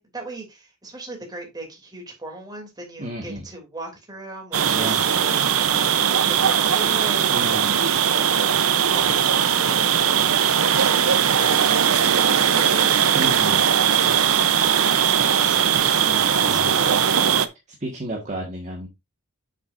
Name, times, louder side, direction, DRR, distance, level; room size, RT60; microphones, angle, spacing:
voice 1, 0.0-7.5 7.8-10.3 14.1-14.4, right 2 dB, 20° right, 2.9 m, -39 dB
voice 2, 3.0-3.4 4.7-5.5 7.3-7.8 13.1-13.6 15.8-16.8 17.8-18.9, right 1 dB, 35° right, 1.7 m, -32 dB
sound 1, 4.5-17.5, right 8 dB, 70° right, 0.8 m, -19 dB
8.6 x 7.0 x 2.6 m
head